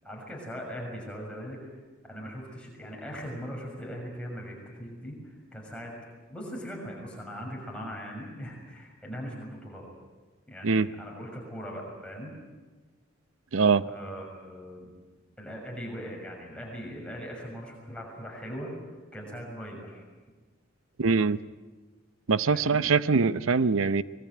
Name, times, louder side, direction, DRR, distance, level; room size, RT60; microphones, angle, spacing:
voice 1, 0.0-1.6 2.1-5.9 6.3-9.8 10.5-12.3 13.8-14.9 15.4-18.7 19.1-20.0 22.5-22.8, equal, 5° left, -2 dB, 6.4 m, -40 dB
voice 2, 13.5-13.9 21.0-21.4 22.3-24.0, right 4 dB, 80° right, 15 dB, 0.7 m, -23 dB
24.5 x 21.0 x 9.3 m, 1.3 s
head